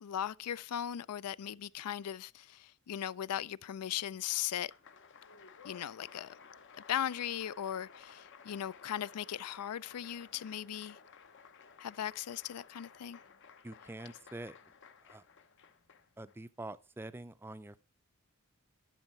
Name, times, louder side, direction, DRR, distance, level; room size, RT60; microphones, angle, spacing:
voice 1, 0.0-4.7 5.6-6.3 6.9-11.0 11.8-13.2, left 10 dB, 85° left, 0.4 m, -38 dB
Applause, 4.4-16.3, left 6 dB, 55° left, 0.8 m, -56 dB
voice 2, 13.6-14.6 15.0-15.3 16.2-17.8, right 2 dB, 10° right, 0.4 m, -45 dB
12.0 x 6.4 x 4.5 m
head